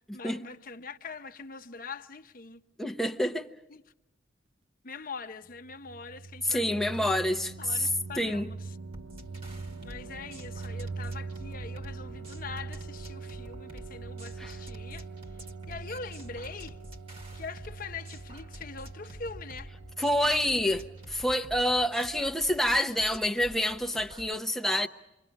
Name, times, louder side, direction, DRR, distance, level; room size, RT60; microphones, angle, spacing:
voice 1, 0.1-2.6 3.7-3.8 4.8-7.1 7.6-8.8 9.8-16.8 17.3-19.7, left 4 dB, 45° left, 0.8 m, -43 dB
voice 2, 2.8-3.5 6.5-7.5 8.2-8.5 14.4-14.5 20.0-24.9, left 1 dB, ahead, 0.7 m, -27 dB
sound 1, 5.5-22.2, right 4 dB, 80° right, 0.8 m, -43 dB
sound 2, 8.9-24.3, equal, 30° right, 1.7 m, -48 dB
29.0 x 23.5 x 5.2 m
head